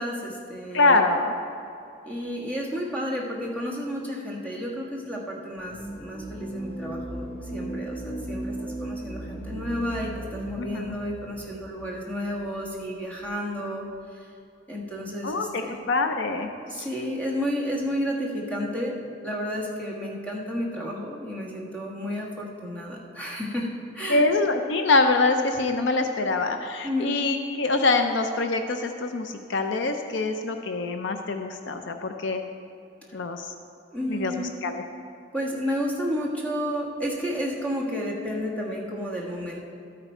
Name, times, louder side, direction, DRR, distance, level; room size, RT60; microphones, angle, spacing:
voice 1, 0.0-1.0 2.0-13.8 14.1-14.3 14.7-15.8 16.6-19.0 19.2-24.3 26.8-27.1 33.1-33.2 33.9-34.5 35.3-39.6, equal, 5° left, -3 dB, 1.4 m, -31 dB
voice 2, 0.7-1.3 10.6-10.9 15.2-15.6 15.9-16.9 24.1-32.4 33.1-33.4 34.1-34.7, left 3 dB, 60° left, 6 dB, 0.5 m, -24 dB
sound 1, 5.6-12.7, right 1 dB, 30° left, 0.8 m, -37 dB
13.0 x 9.0 x 4.4 m, 2.6 s
head